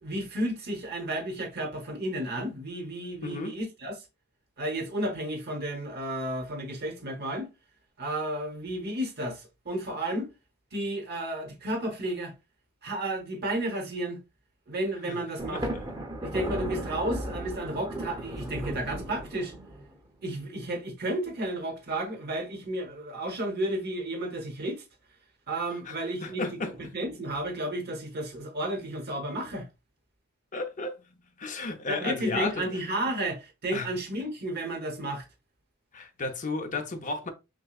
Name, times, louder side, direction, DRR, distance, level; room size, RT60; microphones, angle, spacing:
voice 1, 0.0-4.0 4.6-7.5 8.0-10.3 10.7-12.3 12.8-14.2 14.7-15.7 16.2-19.5 20.2-24.8 25.5-29.7 31.9-35.2, right 1 dB, 45° right, 1.0 m, -32 dB
voice 2, 3.2-3.5 15.1-15.2 15.5-15.9 25.9-26.0 26.2-26.7 30.5-31.0 31.4-32.5 33.7-33.9 35.9-37.3, left 3 dB, 35° left, 0.7 m, -33 dB
Thunder, 15.4-20.0, right 1 dB, 20° right, 0.9 m, -35 dB
6.1 x 2.2 x 2.4 m
head